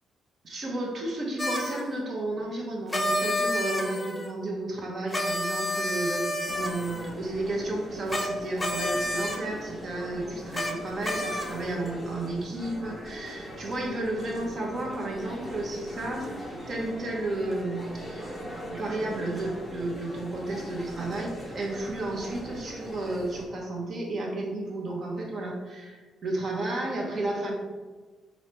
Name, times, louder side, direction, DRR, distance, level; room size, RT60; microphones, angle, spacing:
voice 1, 0.4-18.3 18.7-27.5, right 2 dB, 50° right, -1 dB, 0.9 m, -32 dB
sound 1, 1.4-1.8 2.9-4.3 5.1-7.1 8.1-8.3 8.6-9.4 10.5-10.7 11.0-11.7, left 1 dB, 15° left, 0.5 m, -29 dB
sound 2, 6.5-23.5, equal, 10° right, 0.9 m, -41 dB
3.2 x 2.8 x 4.3 m, 1.4 s
cardioid pair, 90°, 0 cm